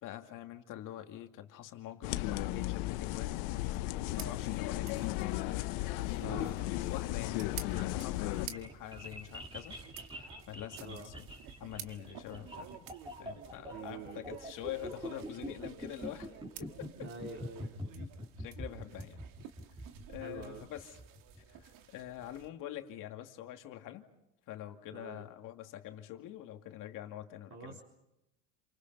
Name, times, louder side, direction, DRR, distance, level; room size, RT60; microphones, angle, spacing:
voice 1, 0.0-3.5 4.1-9.8 10.1-11.3 11.6-12.7 13.2-16.3 16.6-17.1 18.0-18.1 18.4-19.2 20.1-21.0 21.4-24.1 24.5-27.8, left 12 dB, 55° left, 5 dB, 2.4 m, -45 dB
sound 1, 2.0-8.5, left 17 dB, 70° left, 1.1 m, -35 dB
sound 2, 4.1-22.5, right 11 dB, 60° right, 1.9 m, -52 dB
voice 2, 6.2-6.5 10.8-11.1 13.7-14.2 17.0-17.8 20.2-20.6 24.9-25.2 27.5-27.8, right 4 dB, 40° right, -2 dB, 4.1 m, -46 dB
sound 3, 7.7-21.6, equal, 15° right, 4.0 m, -45 dB
28.5 x 26.5 x 5.5 m, 0.88 s
supercardioid pair, 115°, 38 cm